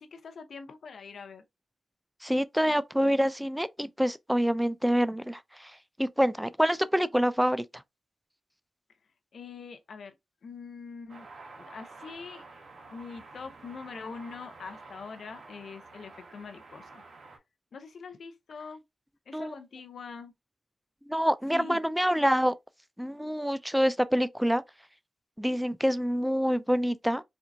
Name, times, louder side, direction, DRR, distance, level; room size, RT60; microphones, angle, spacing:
voice 1, 0.0-1.4 9.3-10.1 10.4-11.3 11.5-12.5 12.9-17.0 17.7-18.8 19.3-20.3 21.5-21.8, left 5 dB, 75° left, 0.6 m, -43 dB
voice 2, 2.2-5.7 6.0-7.8 19.3-19.5 21.1-22.5 23.0-24.6 25.4-27.2, equal, 5° right, 0.3 m, -26 dB
sound 1, 11.1-17.4, right 3 dB, 75° right, 0.9 m, -49 dB
4.3 x 2.5 x 2.3 m
cardioid pair, 70°, 0 cm